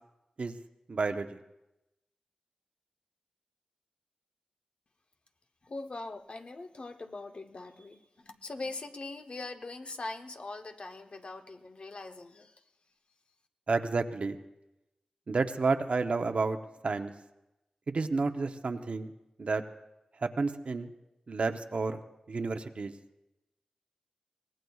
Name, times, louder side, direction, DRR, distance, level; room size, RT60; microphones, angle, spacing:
voice 1, 0.9-1.4 13.7-14.4 15.3-16.6 16.8-17.1 17.9-19.1 19.4-19.6 20.2-20.9 21.3-22.0 22.3-22.9, right 4 dB, 65° right, 7 dB, 0.8 m, -30 dB
voice 2, 5.6-12.6, left 2 dB, 55° left, 6 dB, 0.9 m, -42 dB
24.0 x 18.5 x 2.3 m, 0.94 s
wide cardioid pair, 65°, 2 cm